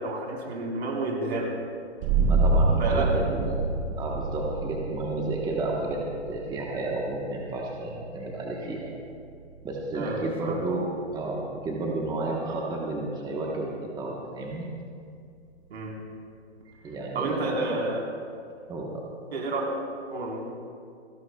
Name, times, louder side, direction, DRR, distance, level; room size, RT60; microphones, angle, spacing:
voice 1, 0.0-1.5 2.8-3.1 9.9-10.5 15.7-16.0 17.1-18.0 19.3-19.8 20.1-20.5, right 2 dB, 70° right, -2 dB, 4.2 m, -30 dB
sound 1, 2.0-13.3, right 3 dB, 30° right, 0.6 m, -29 dB
voice 2, 2.2-3.6 4.0-6.0 6.3-8.9 9.6-13.7 14.0-14.7 16.6-17.7 18.7-19.0, right 2 dB, 10° right, -2 dB, 1.2 m, -32 dB
29.5 x 11.5 x 2.3 m, 2.3 s
hypercardioid pair, 135°, 34 cm